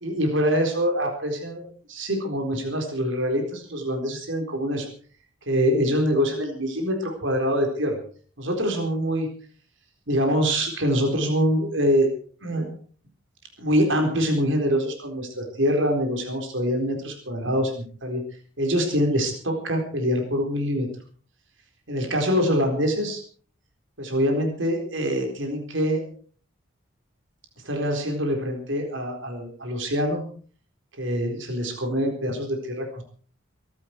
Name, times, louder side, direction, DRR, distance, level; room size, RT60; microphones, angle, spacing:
voice 1, 0.0-4.9 5.5-8.0 8.4-9.3 10.1-12.1 12.4-12.7 13.6-18.2 18.6-20.9 21.9-23.2 24.0-26.0 27.6-30.2 31.0-33.0, equal, 70° right, 3 dB, 4.2 m, -24 dB
24.0 x 12.0 x 4.6 m, 0.43 s
head